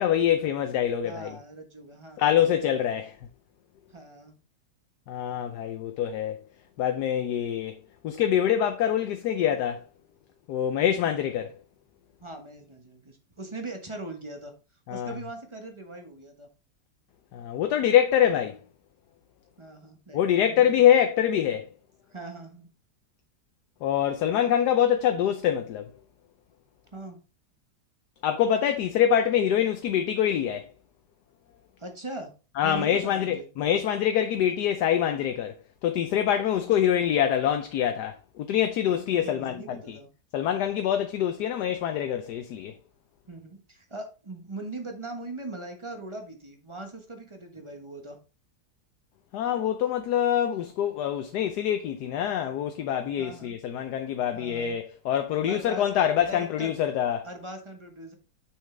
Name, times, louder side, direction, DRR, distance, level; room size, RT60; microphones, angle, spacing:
voice 1, 0.0-1.3 2.2-3.1 5.1-6.4 6.8-7.8 8.0-9.8 10.5-11.5 14.9-15.1 17.3-18.6 20.1-21.7 23.8-25.9 28.2-30.7 32.6-35.5 35.8-40.0 40.3-42.8 49.3-57.3, left 10 dB, 75° left, 1.2 m, -25 dB
voice 2, 1.0-2.4 3.9-4.3 12.2-14.5 14.9-16.5 19.6-21.0 22.1-22.7 26.9-27.2 31.8-32.3 32.6-33.5 39.2-40.1 43.3-48.2 53.2-53.5 54.3-54.8 55.5-56.7 57.2-58.1, right 2 dB, 20° right, 1.0 m, -40 dB
6.4 x 6.4 x 3.3 m
omnidirectional pair, 1.8 m